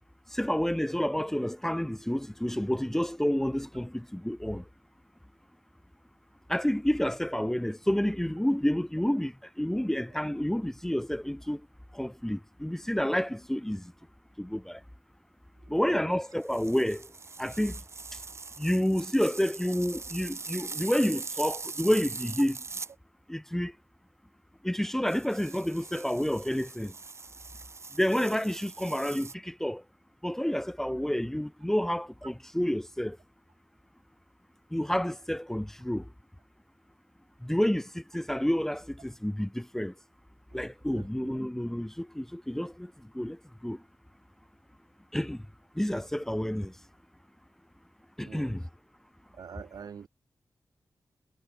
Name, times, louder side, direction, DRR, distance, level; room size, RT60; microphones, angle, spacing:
voice 1, 0.3-4.6 6.5-11.6 11.9-13.8 14.4-14.8 15.7-17.0 17.4-17.8 18.6-22.6 23.3-23.7 24.6-26.9 28.0-29.8 30.2-33.2 34.7-36.0 37.4-39.9 40.5-43.4 43.6-43.8 45.1-45.4 45.8-46.7 48.2-48.6, equal, 5° left, 0.9 m, -29 dB
voice 2, 15.6-16.2 40.5-40.6 40.9-41.4 48.2-48.6 49.3-50.1, right 6 dB, 85° right, 3.5 m, -46 dB
sound 1, 16.4-22.9 25.1-29.3, right 4 dB, 45° right, 0.8 m, -42 dB
cardioid pair, 65°, 6 cm